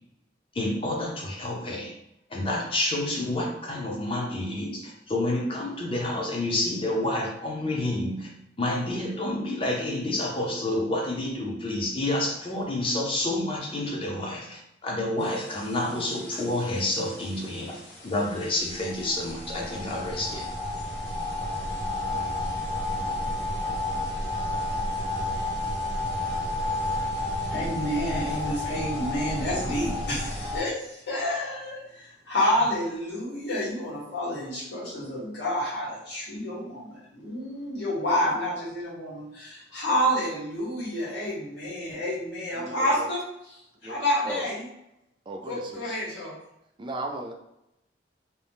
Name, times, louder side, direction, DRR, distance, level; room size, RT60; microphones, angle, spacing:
voice 1, 0.5-1.9 2.3-8.3 8.6-20.5, left 1 dB, 30° left, -1 dB, 0.5 m, -29 dB
sound 1, 15.2-30.6, left 1 dB, 50° left, 1.3 m, -32 dB
voice 2, 27.5-44.7 45.4-46.3, equal, 90° left, -7 dB, 1.4 m, -29 dB
voice 3, 42.6-43.0 43.8-44.0 44.3-44.5 45.3-45.9 46.8-47.3, right 2 dB, 25° right, 3 dB, 0.3 m, -36 dB
2.7 x 2.0 x 3.3 m, 0.83 s
head